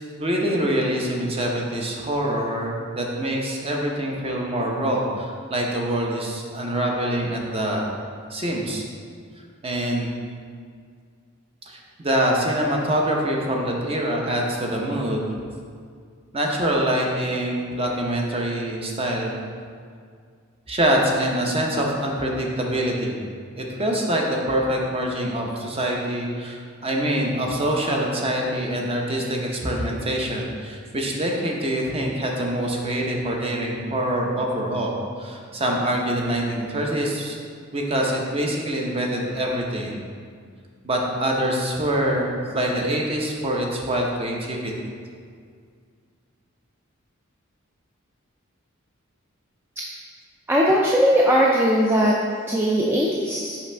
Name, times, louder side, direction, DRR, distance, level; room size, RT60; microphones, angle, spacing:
voice 1, 0.1-7.9 8.3-8.8 9.6-10.1 11.7-15.3 16.3-19.4 20.7-23.2 23.6-37.4 37.7-40.0 40.8-44.7, right 1 dB, 25° right, -1 dB, 0.7 m, -25 dB
voice 2, 50.5-52.2 52.5-53.6, equal, 10° right, -3 dB, 0.3 m, -19 dB
5.8 x 5.0 x 3.3 m, 2.1 s
head